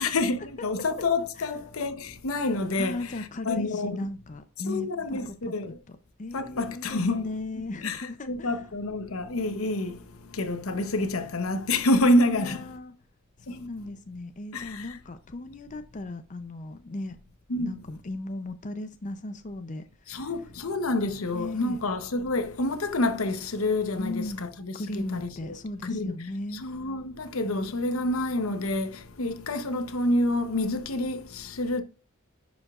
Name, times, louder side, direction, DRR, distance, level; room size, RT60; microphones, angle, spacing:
voice 1, 0.0-4.1 4.7-5.8 6.3-7.3 7.8-10.0 10.3-12.6 14.5-15.0 17.5-17.7 20.1-25.6 25.8-26.1 26.5-31.8, left 2 dB, 80° left, 0.9 m, -28 dB
voice 2, 2.8-8.5 12.3-13.0 13.5-17.2 17.6-20.3 21.3-21.8 24.0-24.5 24.8-26.6 27.4-28.1, left 2 dB, 35° left, 0.6 m, -37 dB
11.0 x 5.2 x 2.4 m
head